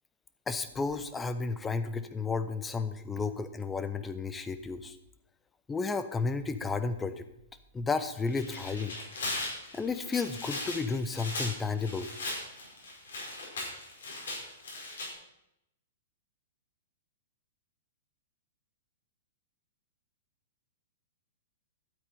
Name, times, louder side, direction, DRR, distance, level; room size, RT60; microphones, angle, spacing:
voice 1, 0.5-5.0 5.7-7.2 7.7-9.0 9.7-12.1, left 4 dB, 15° left, 11 dB, 1.0 m, -32 dB
Tearing, 8.2-15.1, left 2 dB, 75° left, 5.3 m, -38 dB
12.5 x 8.3 x 5.5 m, 0.83 s
hypercardioid pair, 110°, 0 cm